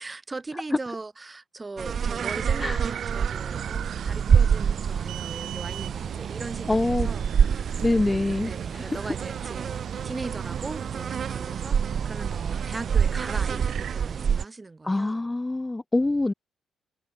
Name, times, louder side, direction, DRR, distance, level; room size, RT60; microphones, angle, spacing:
voice 1, 0.0-7.7 8.4-15.2, right 3 dB, 25° right, 1.8 m, -39 dB
sound 1, 1.8-14.4, right 7 dB, 50° right, 1.0 m, -27 dB
sound 2, 2.2-13.9, right 10 dB, 65° right, 1.3 m, -37 dB
sound 3, 4.8-11.7, right 15 dB, 90° right, 6.0 m, -44 dB
voice 2, 6.7-7.1 7.8-9.1 14.8-16.3, left 2 dB, 15° left, 1.2 m, -25 dB
cardioid pair, 90°, 0 cm